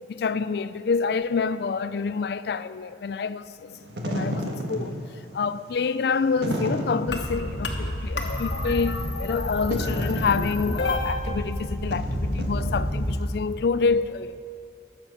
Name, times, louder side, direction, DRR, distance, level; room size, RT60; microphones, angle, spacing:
voice 1, 0.1-3.8 4.0-5.0 5.3-14.3, left 5 dB, 65° left, 0.3 m, -27 dB
Wind / Fire, 3.7-13.2, equal, 75° right, 1.5 m, -33 dB
sound 1, 7.1-13.1, left 1 dB, 80° left, 1.1 m, -29 dB
12.5 x 7.5 x 6.3 m
head